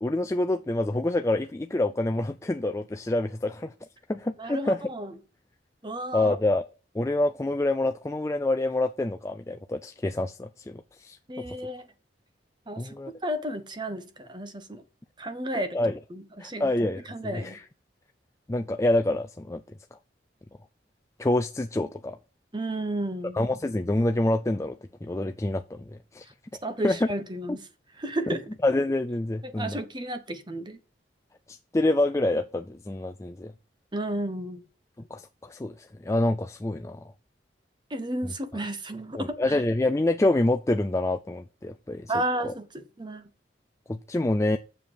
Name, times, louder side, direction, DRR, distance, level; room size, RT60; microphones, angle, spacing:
voice 1, 0.0-3.7 4.1-4.8 6.1-6.6 6.9-11.2 12.8-13.1 15.5-16.0 16.4-17.6 18.5-19.6 21.2-22.2 23.3-25.8 26.1-26.2 26.8-27.0 28.3-28.4 28.6-29.8 31.5-33.5 35.1-37.0 38.2-38.3 39.2-42.1 42.4-42.5 43.9-44.6, left 2 dB, 15° left, 0.4 m, -27 dB
voice 2, 4.4-5.1 5.8-6.3 11.3-11.9 12.7-13.0 13.2-14.8 15.2-15.8 16.1-16.7 17.1-17.6 22.5-23.4 26.6-27.6 28.0-28.5 29.4-30.8 33.9-34.6 37.9-39.6 42.1-43.3, right 1 dB, 25° right, 1.1 m, -32 dB
7.7 x 6.8 x 5.5 m
head